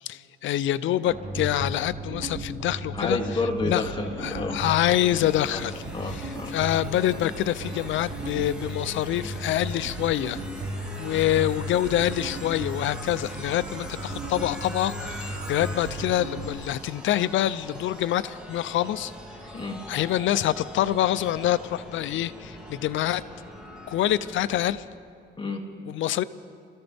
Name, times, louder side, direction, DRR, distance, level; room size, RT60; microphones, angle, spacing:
voice 1, 0.0-3.2 3.6-3.9 4.2-10.4 11.0-19.1 19.9-23.2 23.9-24.8 25.9-26.2, left 12 dB, 75° left, 15 dB, 0.6 m, -26 dB
sound 1, 1.0-16.5, right 1 dB, 35° right, 4.4 m, -36 dB
voice 2, 2.9-4.6 5.5-5.6 5.9-6.5 19.5-19.9 25.4-25.7, left 3 dB, 25° left, 0 dB, 2.5 m, -30 dB
sound 2, 4.8-24.8, equal, 5° right, 3.0 m, -42 dB
28.0 x 14.5 x 3.5 m, 2.2 s
cardioid pair, 90°, 20 cm